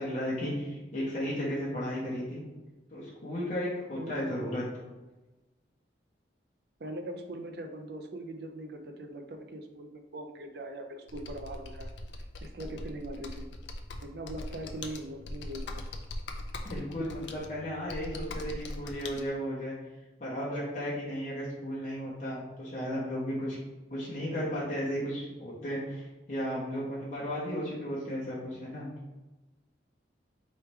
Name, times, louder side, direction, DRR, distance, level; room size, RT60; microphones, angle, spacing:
voice 1, 0.0-2.4 2.9-4.6 16.6-19.7 20.2-23.6 23.9-28.9, equal, 45° left, -7 dB, 1.0 m, -34 dB
voice 2, 3.9-4.5 6.8-11.9 12.4-13.5 14.0-15.8, right 1 dB, 60° right, 4 dB, 0.5 m, -41 dB
Computer keyboard, 11.1-19.2, left 2 dB, 75° left, 0.5 m, -41 dB
4.5 x 3.2 x 3.2 m, 1.1 s
head